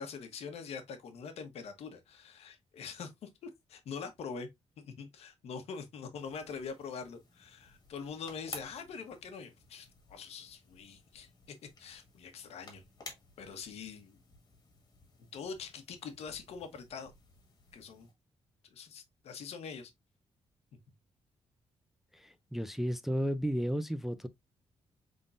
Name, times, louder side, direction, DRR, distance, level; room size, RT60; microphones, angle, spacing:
voice 1, 0.0-4.5 4.8-11.3 11.8-12.8 13.4-14.2 15.2-17.1 17.7-18.1 18.7-19.9, left 5 dB, 75° left, 1.1 m, -44 dB
sound 1, 6.1-18.1, left 3 dB, 40° left, 1.9 m, -54 dB
voice 2, 22.1-24.3, equal, 5° right, 0.3 m, -33 dB
5.4 x 3.7 x 2.4 m
cardioid pair, 145°, 11 cm